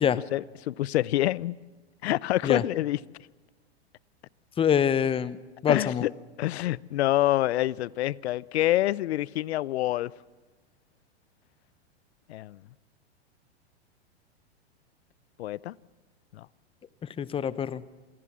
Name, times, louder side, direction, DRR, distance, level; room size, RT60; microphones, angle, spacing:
voice 1, 0.3-1.6 2.0-3.0 5.7-6.1 6.4-10.1 12.3-12.6 15.4-15.8 16.3-16.5, left 15 dB, 70° left, 0.6 m, -27 dB
voice 2, 4.6-5.4 5.6-6.1 17.0-17.8, left 8 dB, 15° left, 0.7 m, -25 dB
27.0 x 19.0 x 7.3 m
hypercardioid pair, 115°, 33 cm